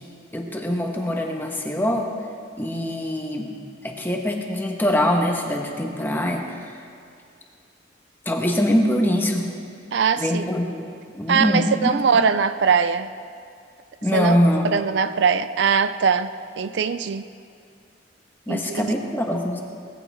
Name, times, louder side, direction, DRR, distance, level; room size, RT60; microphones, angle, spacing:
voice 1, 0.3-2.1 2.6-3.5 3.8-6.7 8.2-9.5 10.2-10.8 11.1-12.2 14.0-14.8 18.5-19.6, equal, 10° left, 1 dB, 1.3 m, -23 dB
voice 2, 9.9-10.5 11.3-13.1 14.1-14.3 14.7-16.3 16.6-17.3 18.5-18.9, right 6 dB, 65° right, 12 dB, 0.4 m, -21 dB
19.0 x 15.0 x 3.6 m, 2.4 s
head